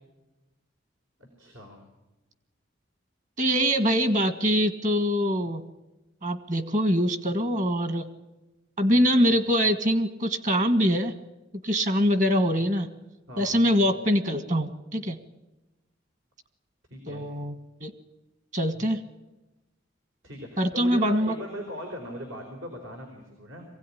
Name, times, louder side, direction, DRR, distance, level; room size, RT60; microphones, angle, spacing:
voice 1, 1.2-1.8 13.3-13.7 16.9-17.2 20.2-23.7, equal, 80° right, 1 dB, 4.3 m, -39 dB
voice 2, 3.4-5.6 6.2-8.1 8.8-11.1 11.6-12.9 13.4-15.2 17.1-17.5 17.8-17.9 18.5-19.0 20.6-21.3, equal, 40° right, 11 dB, 1.5 m, -23 dB
23.5 x 16.5 x 10.0 m, 1.0 s
head